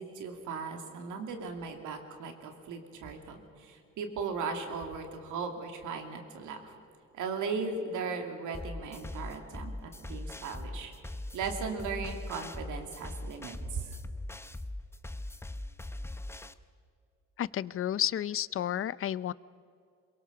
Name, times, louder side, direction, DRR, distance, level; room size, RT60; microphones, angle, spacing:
voice 1, 0.0-6.7 7.1-10.9 11.3-14.0, right 5 dB, 85° right, 4 dB, 2.7 m, -37 dB
sound 1, 8.5-16.5, left 1 dB, 10° left, 0.8 m, -40 dB
voice 2, 17.4-19.3, left 11 dB, 45° left, 20 dB, 0.5 m, -31 dB
22.5 x 22.5 x 6.9 m, 2.3 s
cardioid pair, 90°, 30 cm